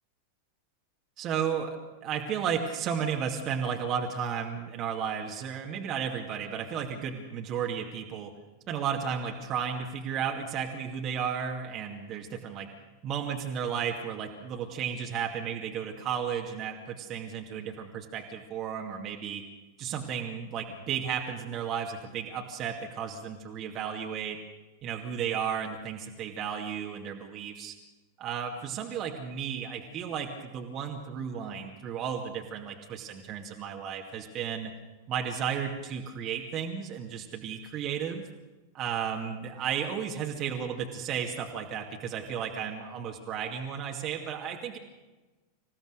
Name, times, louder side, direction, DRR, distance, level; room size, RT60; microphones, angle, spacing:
voice 1, 1.2-8.3 8.7-12.7 13.0-19.4 19.8-24.4 24.8-27.7 28.2-34.7 35.1-38.3 38.7-44.8, right 7 dB, 35° right, 1 dB, 2.3 m, -33 dB
27.0 x 16.0 x 6.7 m, 1.2 s
figure-of-eight pair, 90°, 0 cm